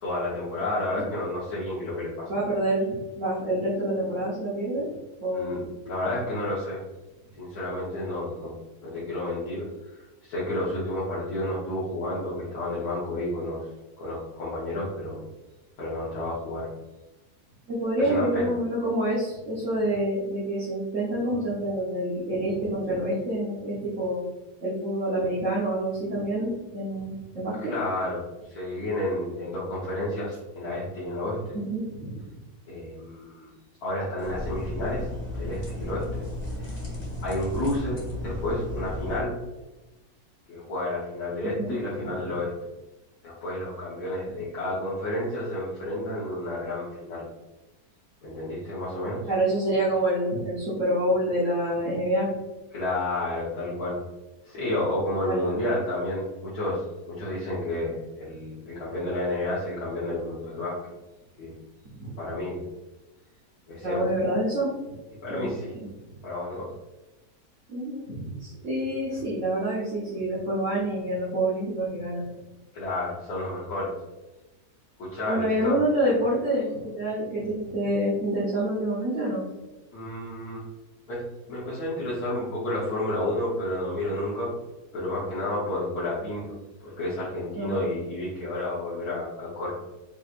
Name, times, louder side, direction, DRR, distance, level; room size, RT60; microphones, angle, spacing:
voice 1, 0.0-2.3 5.3-6.8 7.4-8.5 8.8-9.6 9.9-13.7 14.0-15.2 15.8-16.7 18.0-18.5 27.6-28.2 28.5-31.6 32.7-33.5 33.8-35.1 35.3-36.2 37.2-39.4 40.5-42.7 43.2-47.2 48.2-49.2 52.7-54.0 54.4-60.8 61.4-61.5 62.2-62.6 63.7-64.0 65.2-65.7 66.2-66.7 72.7-73.9 75.0-75.8 79.9-80.6 81.1-81.2 81.5-84.5 84.9-89.7, left 1 dB, 80° left, -9 dB, 1.7 m, -31 dB
voice 2, 2.3-4.9 5.2-5.5 17.7-24.2 24.6-27.7 31.6-32.3 41.5-42.1 49.3-52.3 55.2-55.4 62.0-62.1 63.8-64.7 65.3-65.5 65.7-65.9 67.7-72.3 75.3-79.4 87.5-87.8, right 1 dB, 55° right, -8 dB, 1.4 m, -27 dB
sound 1, 34.2-39.2, left 1 dB, 45° left, 1.6 m, -34 dB
5.3 x 3.1 x 2.5 m, 1.1 s
omnidirectional pair, 1.6 m